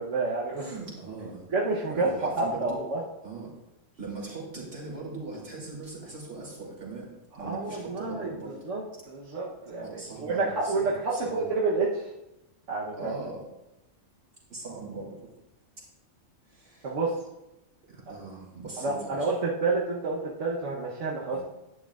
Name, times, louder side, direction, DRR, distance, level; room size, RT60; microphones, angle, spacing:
voice 1, 0.0-0.7 1.5-3.0 7.4-8.3 8.6-8.8 9.1-12.1 12.7-13.1 16.8-17.1 18.8-21.4, right 3 dB, 90° right, -4 dB, 1.4 m, -29 dB
voice 2, 0.5-1.5 1.9-2.8 3.2-3.5 4.0-8.6 8.9-9.0 9.8-11.5 12.9-13.4 14.5-15.2 16.5-16.9 17.9-19.3 21.3-21.4, right 3 dB, 55° right, -4 dB, 3.3 m, -40 dB
11.0 x 9.8 x 2.4 m, 0.94 s
omnidirectional pair, 1.2 m